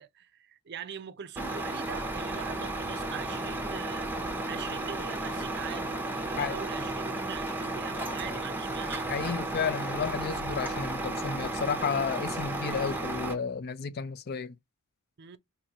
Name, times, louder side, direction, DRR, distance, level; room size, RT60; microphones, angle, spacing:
voice 1, 0.0-4.1 4.5-9.3 15.2-15.4, right 7 dB, 50° right, 0.5 m, -42 dB
Truck, 1.3-13.3, right 2 dB, 10° right, 0.7 m, -33 dB
voice 2, 9.1-14.6, left 6 dB, 45° left, 0.4 m, -32 dB
4.4 x 2.6 x 2.7 m
head